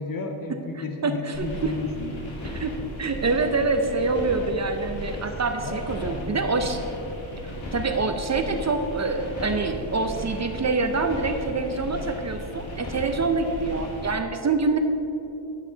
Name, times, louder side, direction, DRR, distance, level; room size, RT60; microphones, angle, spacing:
voice 1, 0.0-2.1 5.6-6.5, left 3 dB, 45° left, 4 dB, 0.9 m, -33 dB
voice 2, 1.0-1.7 2.5-2.7 3.0-6.8 7.7-14.8, right 3 dB, 35° right, 6 dB, 0.7 m, -26 dB
sound 1, 1.3-14.2, equal, 85° left, 2.1 m, -36 dB
10.0 x 9.2 x 4.0 m, 2.9 s
wide cardioid pair, 110°, 46 cm